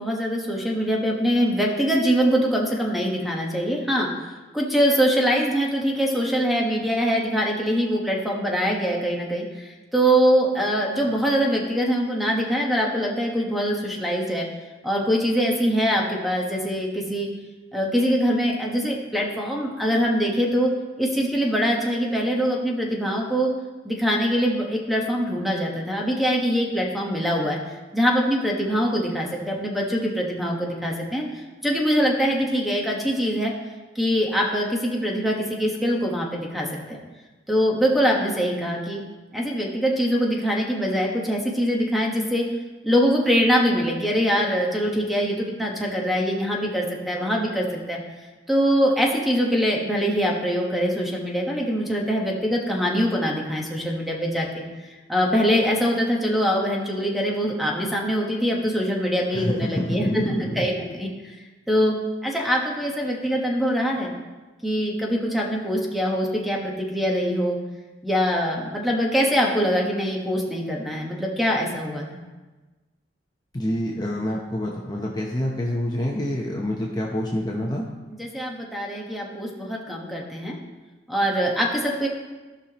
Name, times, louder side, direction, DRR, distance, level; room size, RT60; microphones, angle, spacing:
voice 1, 0.0-4.1 4.5-14.5 14.8-17.3 17.7-20.7 21.0-23.5 23.8-27.6 27.9-31.2 31.6-33.5 33.9-36.7 37.5-39.0 39.3-42.5 42.8-48.0 48.5-54.6 55.1-61.1 61.7-62.0 62.2-64.1 64.6-67.6 68.0-72.2 78.2-80.6 81.1-82.1, equal, ahead, -1 dB, 1.2 m, -23 dB
voice 2, 59.3-60.7 73.5-77.8, left 1 dB, 20° left, -2 dB, 0.8 m, -27 dB
15.5 x 5.7 x 3.0 m, 1.2 s
head